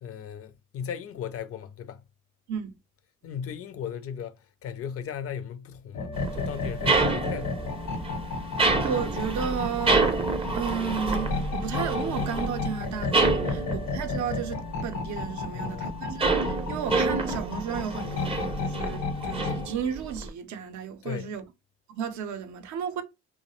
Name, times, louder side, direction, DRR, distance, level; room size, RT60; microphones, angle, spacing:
voice 1, 0.0-2.0 3.2-7.6 13.4-13.8 15.5-16.0 21.0-21.3, left 8 dB, 50° left, 0.4 m, -37 dB
sound 1, 5.9-19.7, left 3 dB, 75° left, 0.8 m, -33 dB
sound 2, 6.1-15.3 15.6-20.3, right 3 dB, 20° right, 0.4 m, -28 dB
voice 2, 8.8-10.0 10.5-21.4 21.9-23.0, right 7 dB, 70° right, 0.5 m, -33 dB
2.3 x 2.0 x 3.0 m
cardioid pair, 90°, 30 cm